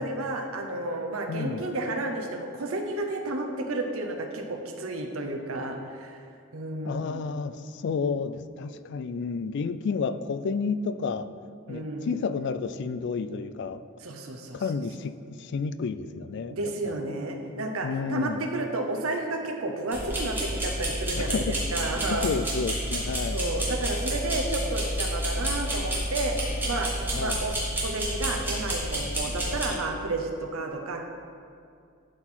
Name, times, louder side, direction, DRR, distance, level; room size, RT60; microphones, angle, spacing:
voice 1, 0.0-6.2 6.5-7.2 11.7-12.2 14.0-14.6 16.5-22.3 23.3-26.9 27.2-27.6 27.8-31.1, right 2 dB, 90° right, 3 dB, 0.8 m, -31 dB
voice 2, 1.3-1.6 6.8-11.3 11.7-13.8 14.5-16.7 17.8-18.4 21.2-21.6 22.1-23.4 27.1-27.4, left 5 dB, 55° left, 13 dB, 0.3 m, -31 dB
sound 1, 19.9-29.7, right 1 dB, 10° right, 1.5 m, -30 dB
11.0 x 4.5 x 4.3 m, 2.4 s
head